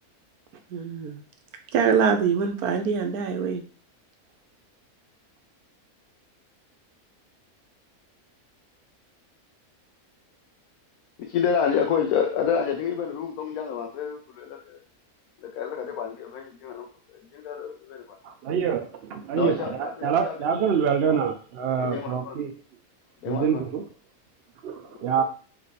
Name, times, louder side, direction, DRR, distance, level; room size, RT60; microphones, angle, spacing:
voice 1, 0.7-1.2 1.7-3.6, right 6 dB, 80° right, 6 dB, 1.2 m, -24 dB
voice 2, 11.2-14.8 15.4-16.9 17.3-18.2 19.4-20.3 21.1-21.2 21.7-22.4 23.2-23.6 25.2-25.3, left 7 dB, 75° left, 2 dB, 1.1 m, -28 dB
voice 3, 18.2-22.5 23.3-23.8 24.6-25.2, right 7 dB, 65° right, 5 dB, 0.6 m, -26 dB
3.4 x 3.3 x 4.0 m, 0.39 s
omnidirectional pair, 1.6 m